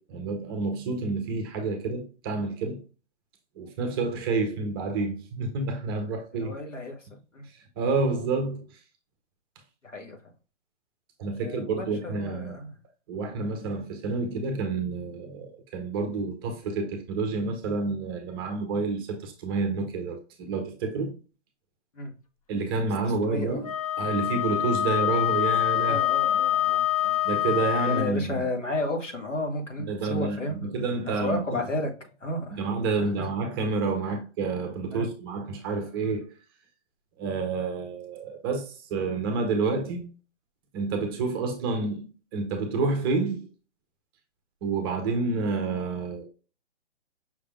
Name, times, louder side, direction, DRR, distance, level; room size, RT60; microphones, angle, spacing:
voice 1, 0.0-2.8 3.6-6.5 7.8-8.6 11.2-12.6 13.1-21.1 22.5-23.7 24.0-26.0 27.2-28.5 29.8-31.6 32.5-36.2 37.2-40.1 40.7-42.1 42.3-43.4 44.6-46.2, right 3 dB, 20° right, 0.6 m, -29 dB
voice 2, 6.3-7.0 7.3-7.5 9.8-10.2 11.4-12.7 21.9-22.1 23.2-23.6 25.8-27.2 27.8-30.7 31.1-31.9 32.2-32.6 33.0-33.3 34.9-35.1, left 2 dB, 90° left, 1.6 m, -32 dB
Wind instrument woodwind instrument, 23.6-28.2, left 12 dB, 30° left, 0.4 m, -25 dB
5.6 x 3.4 x 2.3 m
hypercardioid pair, 140°, 36 cm